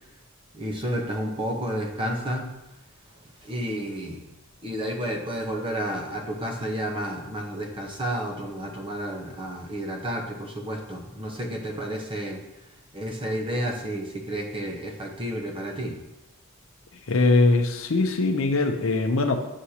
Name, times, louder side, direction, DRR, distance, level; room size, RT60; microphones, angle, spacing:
voice 1, 0.5-2.5 3.4-4.2 4.6-12.4 12.9-16.0, equal, 25° right, 1 dB, 0.9 m, -31 dB
voice 2, 17.1-19.4, left 2 dB, 60° left, 5 dB, 0.7 m, -21 dB
8.1 x 6.3 x 2.9 m, 0.94 s
head